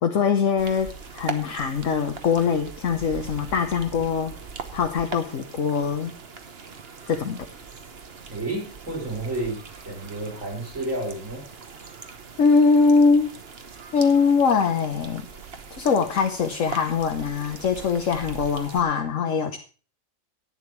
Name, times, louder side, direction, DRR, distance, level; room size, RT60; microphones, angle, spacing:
voice 1, 0.0-4.3 4.7-6.1 7.1-7.5 12.4-13.4 13.9-15.3 15.8-19.6, left 5 dB, 70° left, 4 dB, 1.4 m, -22 dB
sound 1, 0.6-18.8, right 5 dB, 50° right, 1.3 m, -41 dB
voice 2, 8.3-11.4, right 2 dB, 70° right, -1 dB, 4.5 m, -31 dB
11.0 x 8.9 x 4.6 m, 0.37 s
omnidirectional pair, 1.4 m